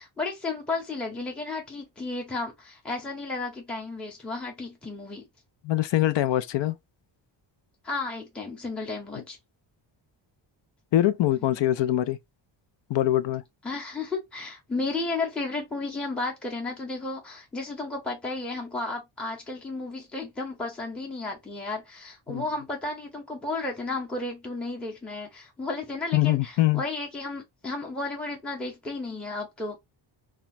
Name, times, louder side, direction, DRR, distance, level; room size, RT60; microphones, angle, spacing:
voice 1, 0.0-5.2 7.8-9.4 11.4-11.6 13.6-29.8, left 3 dB, ahead, 0.6 m, -33 dB
voice 2, 5.6-6.8 10.9-12.2 12.9-13.4 22.3-22.5 26.1-26.8, left 14 dB, 65° left, 0.5 m, -23 dB
2.3 x 2.2 x 4.0 m
wide cardioid pair, 145°, 47 cm